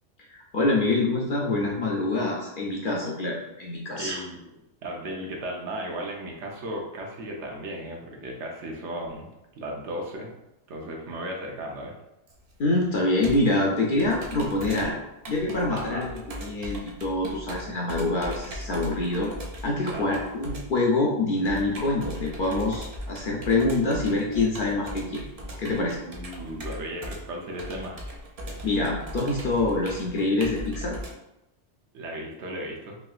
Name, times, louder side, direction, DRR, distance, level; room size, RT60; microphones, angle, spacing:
voice 1, 0.3-4.2 12.6-15.0 15.3-19.3 19.6-25.2 25.6-26.0 28.6-31.0, left 2 dB, 55° left, -2 dB, 0.6 m, -25 dB
voice 2, 3.9-4.5 4.8-9.3 9.6-10.3 10.7-11.9 15.7-16.1 19.8-20.2 26.0-28.0 31.9-33.0, right 1 dB, 75° right, 0 dB, 1.0 m, -35 dB
Computer keyboard, 12.3-31.1, equal, 50° right, 0.4 m, -39 dB
3.2 x 2.8 x 2.3 m, 0.89 s
omnidirectional pair, 1.2 m